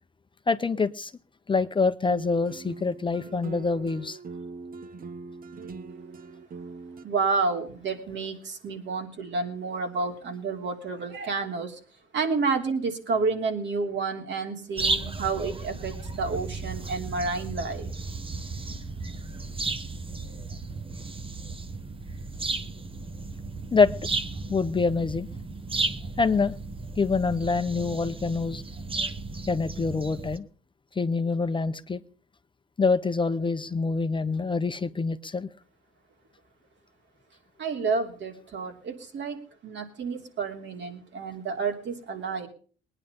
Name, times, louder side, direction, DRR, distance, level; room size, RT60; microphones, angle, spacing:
voice 1, 0.5-1.1 1.5-4.2 23.7-23.9 24.5-25.3 26.2-26.5 27.0-28.6 29.5-30.5 31.0-32.0 32.8-35.5, left 4 dB, 25° left, 11 dB, 0.7 m, -25 dB
sound 1, 2.1-7.0, right 4 dB, 45° right, 1.2 m, -42 dB
voice 2, 7.0-11.8 12.1-17.9 37.6-42.5, right 4 dB, 65° right, 3 dB, 3.2 m, -30 dB
sound 2, 14.8-30.4, right 3 dB, 25° right, 1.1 m, -34 dB
20.0 x 9.9 x 5.3 m, 0.42 s
cardioid pair, 90°, 20 cm